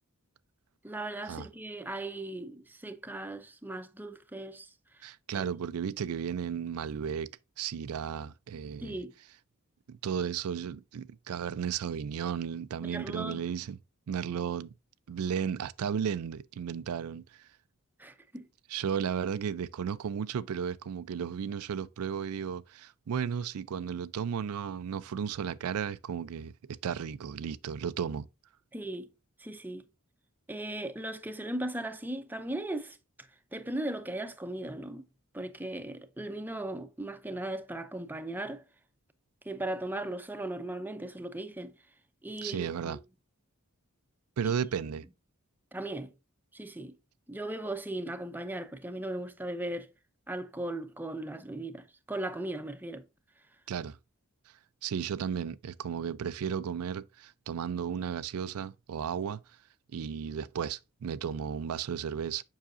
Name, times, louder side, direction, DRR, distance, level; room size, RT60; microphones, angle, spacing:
voice 1, 0.8-4.7 5.0-5.5 8.8-9.1 12.8-13.4 18.0-18.5 28.7-29.1 29.4-29.9 30.5-33.0 33.5-35.0 35.3-38.6 39.5-41.7 42.2-42.9 44.4-44.5 45.7-46.1 46.5-47.0 47.3-49.9 50.3-53.0, right 1 dB, 10° right, 0.6 m, -37 dB
voice 2, 5.0-7.3 7.6-9.0 9.9-13.8 14.1-14.7 15.1-17.5 18.7-26.5 26.8-28.3 42.4-43.0 44.4-45.0 53.7-54.0 54.8-59.4 59.9-62.4, right 7 dB, 75° right, 0.4 m, -34 dB
7.4 x 5.6 x 2.5 m
head